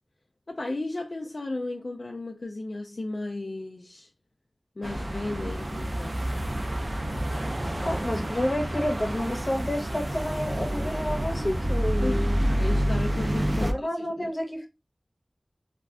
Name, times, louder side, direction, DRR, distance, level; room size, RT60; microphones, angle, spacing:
voice 1, 0.5-4.1 4.8-6.2 12.0-12.3 12.6-14.3, left 2 dB, 70° left, 0.4 m, -34 dB
sound 1, 4.8-13.7, equal, 40° right, 0.4 m, -28 dB
voice 2, 7.8-12.4 13.6-14.7, left 1 dB, 40° left, 0.8 m, -30 dB
2.4 x 2.1 x 3.3 m
wide cardioid pair, 60°, 0 cm